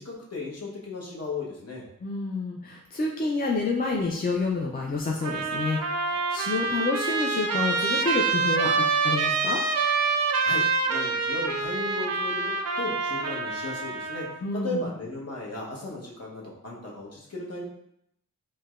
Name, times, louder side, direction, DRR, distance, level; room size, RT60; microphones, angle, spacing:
voice 1, 0.0-1.8 10.4-14.3 14.5-17.6, left 2 dB, 45° left, -4 dB, 0.9 m, -36 dB
voice 2, 2.0-9.6 14.4-14.9, left 3 dB, 30° left, -1 dB, 0.4 m, -29 dB
Trumpet, 5.2-14.4, right 4 dB, 50° right, 0.4 m, -26 dB
4.5 x 2.2 x 2.3 m, 0.75 s
wide cardioid pair, 85°, 34 cm